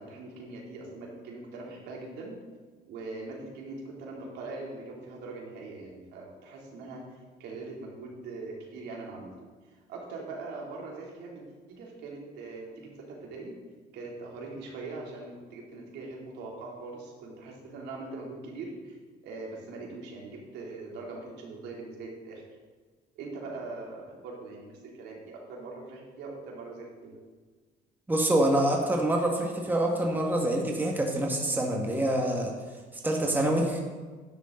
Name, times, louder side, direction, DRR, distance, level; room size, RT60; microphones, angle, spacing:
voice 1, 0.0-2.4 2.9-9.3 9.9-11.4 11.7-13.5 13.9-19.0 19.2-22.4 23.1-27.2, right 3 dB, 85° right, -2 dB, 3.0 m, -41 dB
voice 2, 28.1-32.5 33.0-33.8, right 1 dB, 10° right, 0 dB, 1.8 m, -26 dB
12.0 x 10.0 x 3.9 m, 1.4 s
cardioid pair, 110°, 17 cm